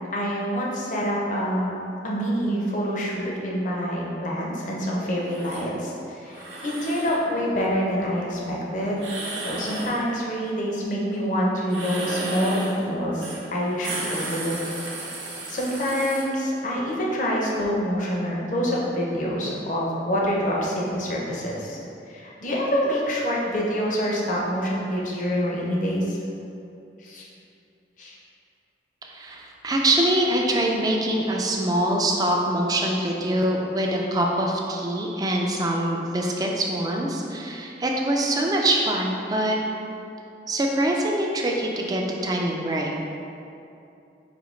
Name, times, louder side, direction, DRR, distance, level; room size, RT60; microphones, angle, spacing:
voice 1, 0.1-9.1 9.4-14.6 15.2-21.8 22.1-26.2 27.0-27.3 28.0-28.2, equal, 45° left, -3 dB, 0.6 m, -26 dB
sound 1, 5.3-5.6 6.3-7.2 9.0-10.0 11.6-12.8 13.2-13.4 13.7-16.2, right 2 dB, 85° right, 0.8 m, -34 dB
voice 2, 29.0-39.6 40.5-42.9, right 1 dB, 20° right, 0 dB, 0.4 m, -24 dB
5.1 x 2.8 x 3.1 m, 2.7 s
head